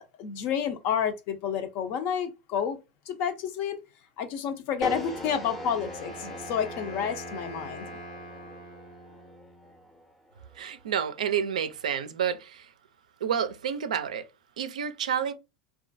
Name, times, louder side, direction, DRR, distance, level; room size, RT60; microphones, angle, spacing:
voice 1, 0.0-2.8 3.1-3.8 4.2-7.8, left 8 dB, 50° left, 0.5 m, -30 dB
Wind instrument woodwind instrument, 4.8-9.7, equal, 85° left, 1.3 m, -43 dB
sound 1, 4.8-11.0, left 1 dB, 5° left, 0.5 m, -41 dB
voice 2, 10.6-12.7 13.2-14.3 14.6-15.3, right 8 dB, 75° right, 0.4 m, -29 dB
2.4 x 2.1 x 2.5 m
hypercardioid pair, 85°, 4 cm